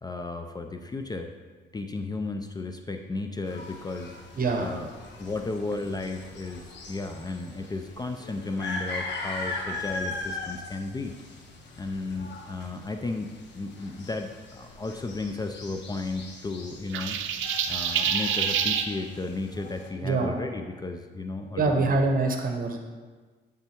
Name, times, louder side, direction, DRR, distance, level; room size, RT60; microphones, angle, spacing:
voice 1, 0.0-1.3 1.7-4.2 4.6-4.9 5.2-11.1 11.8-21.9, left 3 dB, 20° left, 5 dB, 0.4 m, -34 dB
sound 1, 3.5-19.9, left 3 dB, 65° left, 1.0 m, -40 dB
voice 2, 4.3-4.8 20.0-20.3 21.6-22.8, right 3 dB, 45° right, 4 dB, 0.9 m, -25 dB
sound 2, 16.9-18.9, right 8 dB, 75° right, 0.5 m, -27 dB
7.9 x 3.5 x 4.4 m, 1.4 s
cardioid pair, 90°, 20 cm